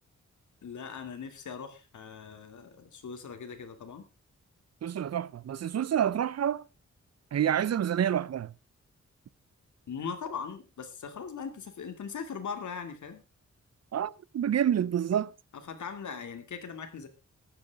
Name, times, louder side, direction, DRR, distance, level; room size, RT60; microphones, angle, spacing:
voice 1, 0.6-4.0 9.9-13.2 15.5-17.1, left 6 dB, 85° left, 2.6 m, -40 dB
voice 2, 4.8-6.6 7.3-8.5 13.9-15.3, right 9 dB, 60° right, 0.6 m, -28 dB
14.5 x 11.5 x 3.6 m
wide cardioid pair, 140°, 29 cm